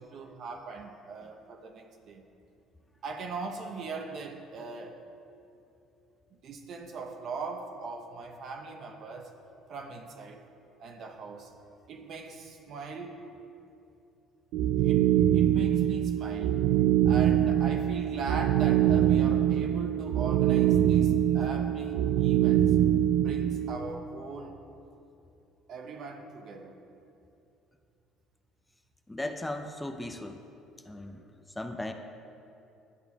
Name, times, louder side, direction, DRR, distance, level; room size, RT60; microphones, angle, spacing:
voice 1, 0.0-2.2 3.0-5.0 6.3-9.3 9.7-10.4 10.8-11.5 11.9-13.2 14.8-16.6 17.0-22.8 23.2-24.6 25.7-26.8, right 4 dB, 60° right, 3 dB, 0.7 m, -40 dB
sound 1, 14.5-23.8, right 11 dB, 75° right, 0.3 m, -24 dB
voice 2, 29.1-30.4 30.9-31.2 31.6-31.9, left 1 dB, 15° left, 5 dB, 0.5 m, -36 dB
11.0 x 6.7 x 2.3 m, 2.7 s
supercardioid pair, 75°, 0 cm